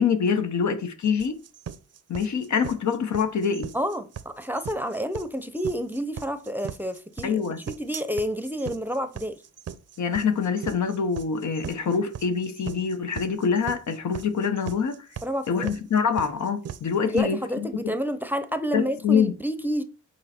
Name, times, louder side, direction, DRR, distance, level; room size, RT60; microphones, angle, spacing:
voice 1, 0.0-1.4 2.1-3.7 7.2-7.6 10.0-15.1 15.5-17.7 18.7-19.3, left 6 dB, 65° left, 1.1 m, -25 dB
sound 1, 1.2-17.2, right 8 dB, 50° right, 0.6 m, -39 dB
voice 2, 3.7-9.4 15.2-15.7 17.0-19.8, equal, 5° right, 0.7 m, -29 dB
7.7 x 4.4 x 4.3 m
cardioid pair, 85°, 31 cm